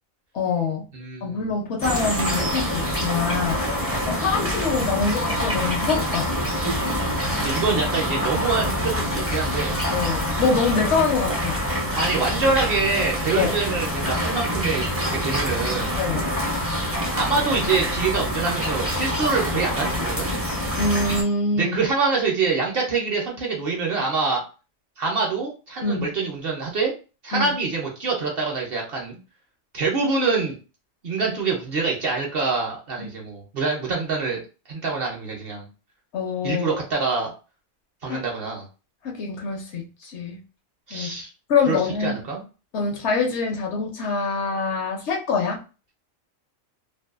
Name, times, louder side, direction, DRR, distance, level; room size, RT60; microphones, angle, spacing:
voice 1, 0.3-0.8 1.2-3.6 4.1-6.3 9.9-11.6 13.4-13.5 16.0-16.3 20.8-21.8 25.8-26.1 27.3-27.5 33.0-33.1 36.1-36.8 38.0-38.2 39.0-40.4 40.9-41.2 41.5-42.2 42.7-45.6, left 4 dB, 65° left, 2 dB, 0.8 m, -25 dB
voice 2, 0.9-1.5 7.4-9.8 12.0-16.0 17.1-20.3 21.6-24.4 25.0-26.9 27.2-29.2 29.7-30.5 31.0-34.4 34.7-35.7 36.4-37.3 38.0-38.7 40.9-41.3 41.7-42.4, right 4 dB, 55° right, -1 dB, 0.8 m, -25 dB
sound 1, 1.8-21.2, equal, 15° right, 0.5 m, -26 dB
2.6 x 2.3 x 2.3 m, 0.33 s
omnidirectional pair, 1.4 m